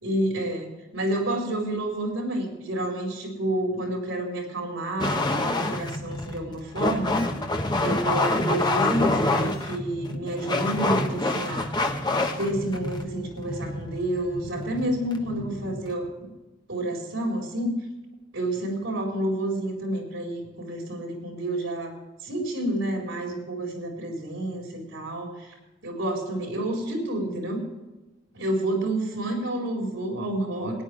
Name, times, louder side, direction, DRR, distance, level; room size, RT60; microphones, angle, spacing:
voice 1, 0.0-7.2 7.8-11.7 12.4-16.1 16.7-17.8 18.3-21.9 22.2-25.5 25.8-27.6 28.3-30.8, right 1 dB, 85° right, 0 dB, 4.2 m, -29 dB
sound 1, 5.0-16.1, left 2 dB, 20° left, 1.3 m, -27 dB
22.0 x 9.9 x 3.4 m, 1.1 s
head